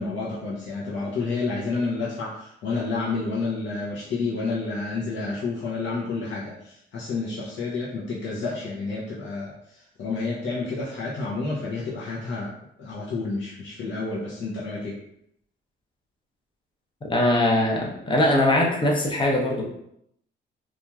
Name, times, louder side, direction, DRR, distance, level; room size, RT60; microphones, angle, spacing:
voice 1, 0.0-12.5 12.8-15.0, left 3 dB, 70° left, -6 dB, 0.7 m, -30 dB
voice 2, 17.1-19.6, left 1 dB, 25° left, -1 dB, 0.7 m, -21 dB
3.0 x 2.4 x 2.3 m, 0.75 s
cardioid pair, 90°, 20 cm